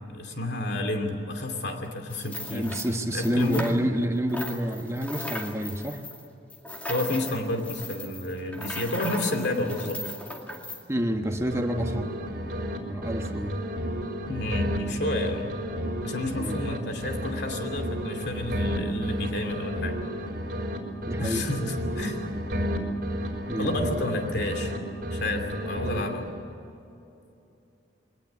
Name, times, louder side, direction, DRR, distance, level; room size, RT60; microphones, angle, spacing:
voice 1, 0.1-2.7 3.1-3.7 6.9-10.1 14.3-15.5 16.0-20.0 21.2-22.3 23.6-24.7 25.1-26.3, left 1 dB, 60° left, 5 dB, 2.8 m, -30 dB
sound 1, 2.1-4.0 4.3-10.8, left 1 dB, 10° left, 2.3 m, -38 dB
voice 2, 2.5-6.0 10.9-12.2 12.9-13.6 16.3-16.6 21.1-21.5 23.5-23.7, equal, 15° right, 4 dB, 1.2 m, -28 dB
sound 2, 11.1-12.8 13.0-16.8 17.0-20.8 21.0-24.8 25.0-26.4, equal, 55° right, 4.2 m, -32 dB
21.5 x 19.0 x 8.4 m, 2.8 s
head